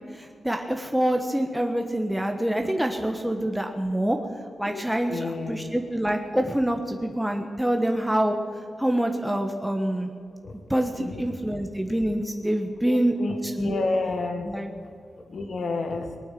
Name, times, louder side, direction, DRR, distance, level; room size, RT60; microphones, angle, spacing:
voice 1, 0.1-4.2 4.6-8.4 8.8-10.1 10.7-13.1 13.4-13.8 14.5-14.7, right 1 dB, 5° right, 3 dB, 1.2 m, -26 dB
voice 2, 5.1-5.7 10.4-10.5 11.0-11.2 12.8-14.5 15.3-16.1, left 3 dB, 75° left, 5 dB, 1.9 m, -30 dB
20.0 x 9.0 x 7.6 m, 2.3 s
cardioid pair, 60°, 0 cm